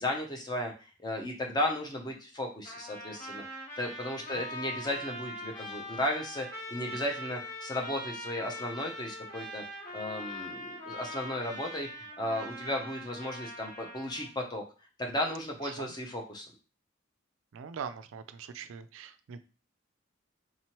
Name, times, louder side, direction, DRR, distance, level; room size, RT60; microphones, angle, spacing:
voice 1, 0.0-9.6 9.9-14.6 15.0-16.5, left 1 dB, 20° left, 2 dB, 0.6 m, -35 dB
Trumpet, 2.6-14.3, left 1 dB, 45° left, 1.4 m, -42 dB
voice 2, 17.5-19.4, right 6 dB, 85° right, 12 dB, 0.3 m, -42 dB
3.8 x 3.0 x 2.9 m, 0.36 s
head